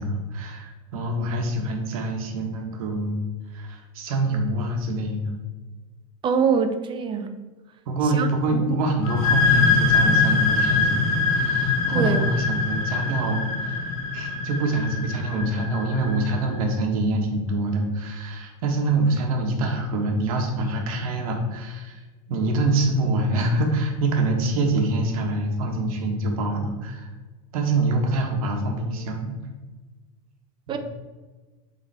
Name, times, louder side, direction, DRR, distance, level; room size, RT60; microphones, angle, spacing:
voice 1, 0.0-3.2 3.5-5.4 7.9-22.0 22.3-27.1 27.5-29.4 30.7-30.8, right 2 dB, 75° right, 2 dB, 1.7 m, -25 dB
voice 2, 6.2-7.4 8.2-8.3 8.7-8.8 11.9-12.2 30.7-30.8, right 6 dB, 25° right, 8 dB, 0.7 m, -23 dB
sound 1, 9.0-16.5, left 4 dB, 70° left, 1.2 m, -23 dB
7.9 x 4.1 x 4.3 m, 1.3 s
supercardioid pair, 135°, 18 cm